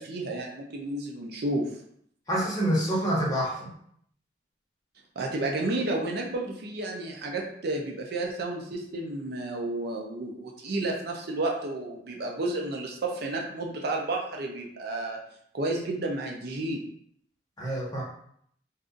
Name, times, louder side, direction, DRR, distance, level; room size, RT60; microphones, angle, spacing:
voice 1, 0.0-1.8 5.2-15.2 15.5-16.8, right 2 dB, 55° right, 1 dB, 0.5 m, -31 dB
voice 2, 2.3-3.7 17.6-18.0, right 1 dB, 20° left, -6 dB, 1.1 m, -27 dB
2.6 x 2.4 x 3.7 m, 0.68 s
head